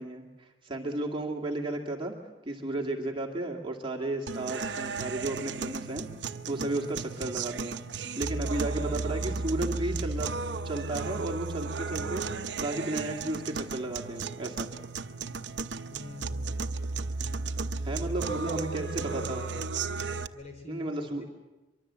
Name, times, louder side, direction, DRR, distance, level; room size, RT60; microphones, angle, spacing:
voice 1, 0.0-2.1 2.4-6.1 6.5-7.8 8.2-12.3 12.6-14.7 17.8-19.5 20.7-21.2, right 2 dB, 30° right, 0 dB, 2.2 m, -33 dB
sound 1, 4.3-20.3, right 4 dB, 70° right, 0.8 m, -34 dB
voice 2, 15.9-16.5 18.2-19.7 20.3-21.2, right 2 dB, 35° left, 4 dB, 4.5 m, -41 dB
24.0 x 24.0 x 7.5 m, 1.1 s
head